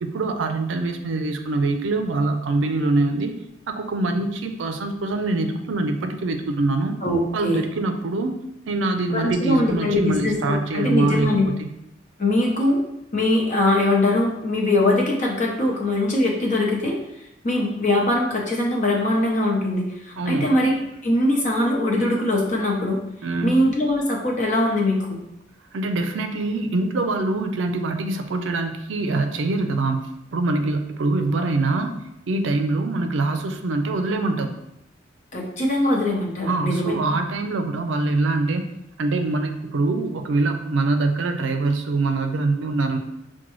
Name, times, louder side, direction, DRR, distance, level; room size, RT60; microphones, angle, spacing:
voice 1, 0.0-3.4 3.7-7.0 7.3-8.3 8.7-11.3 11.6-11.7 20.2-20.5 23.2-23.6 25.7-30.0 30.3-31.9 32.3-34.5 36.5-38.6 39.0-43.0, right 2 dB, 75° right, 6 dB, 0.4 m, -24 dB
voice 2, 7.0-7.6 9.1-11.5 12.2-12.8 13.1-17.0 17.4-20.7 21.0-23.0 23.4-25.2 35.3-37.0, left 1 dB, 40° left, -1 dB, 0.8 m, -21 dB
5.9 x 2.2 x 3.0 m, 0.83 s
head